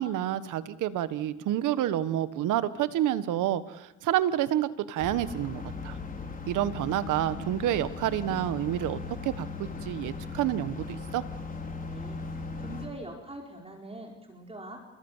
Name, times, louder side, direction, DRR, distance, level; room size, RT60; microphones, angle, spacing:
voice 1, 0.0-6.0 6.5-11.2, right 12 dB, 90° right, 13 dB, 1.4 m, -29 dB
sound 1, 5.0-12.9, left 4 dB, 25° left, 4.4 m, -38 dB
voice 2, 11.8-12.2 12.6-15.0, right 1 dB, 20° right, 1 dB, 4.6 m, -43 dB
29.5 x 21.5 x 7.4 m, 0.97 s
cardioid pair, 90°, 30 cm